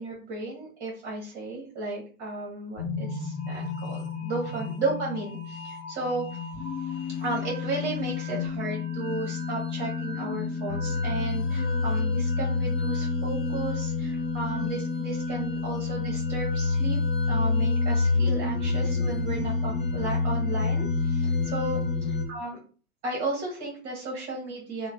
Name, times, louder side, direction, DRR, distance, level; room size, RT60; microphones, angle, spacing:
voice 1, 0.0-17.0 17.3-22.6 23.0-24.9, right 3 dB, 25° right, -1 dB, 0.9 m, -34 dB
sound 1, 2.8-22.2, left 4 dB, 35° left, 1.3 m, -28 dB
3.1 x 2.1 x 4.1 m, 0.39 s
hypercardioid pair, 145°, 43 cm